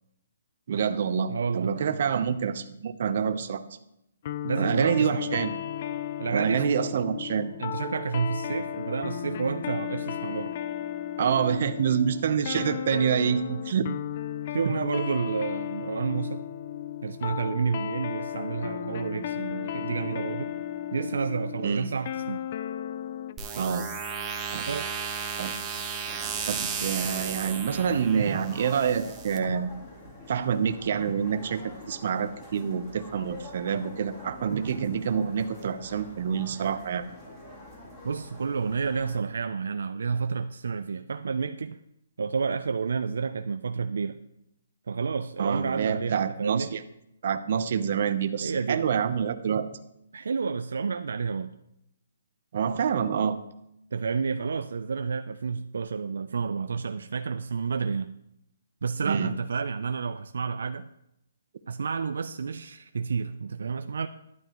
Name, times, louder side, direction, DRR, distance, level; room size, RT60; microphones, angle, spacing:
voice 1, 0.7-3.6 4.6-5.5 6.3-7.6 11.2-13.9 14.6-14.7 21.6-21.9 23.5-23.9 24.5-24.6 25.4-25.5 26.5-29.7 30.3-37.1 45.4-46.8 47.2-49.7 52.5-53.4 59.0-59.3, right 7 dB, 55° right, 11 dB, 0.8 m, -27 dB
voice 2, 1.3-1.8 4.4-5.4 6.2-6.7 7.6-10.6 13.5-13.6 14.5-16.5 17.0-20.6 20.9-22.4 24.7-24.9 38.0-41.8 42.2-44.2 44.9-46.7 48.4-48.8 50.1-51.5 53.9-58.1 58.8-60.9 61.7-64.1, right 5 dB, 80° right, 9 dB, 0.4 m, -30 dB
sound 1, 4.2-23.4, left 10 dB, 40° left, 0.4 m, -35 dB
sound 2, 23.4-29.4, right 6 dB, 15° right, 1.0 m, -34 dB
sound 3, 26.0-39.2, left 1 dB, 20° left, 3.0 m, -46 dB
12.0 x 10.5 x 3.0 m, 0.81 s
hypercardioid pair, 160°, 0 cm